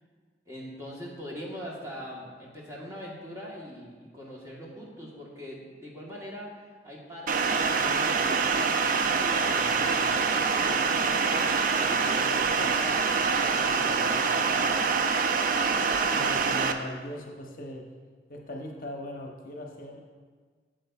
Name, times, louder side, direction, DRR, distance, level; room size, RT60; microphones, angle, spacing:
voice 1, 0.5-6.5 6.8-14.9, equal, 15° right, -4 dB, 1.2 m, -42 dB
sound 1, 7.3-16.7, right 5 dB, 45° right, 0.4 m, -25 dB
voice 2, 16.1-17.8 18.3-20.0, left 1 dB, 50° left, 1 dB, 0.8 m, -39 dB
8.3 x 7.7 x 2.4 m, 1.5 s
head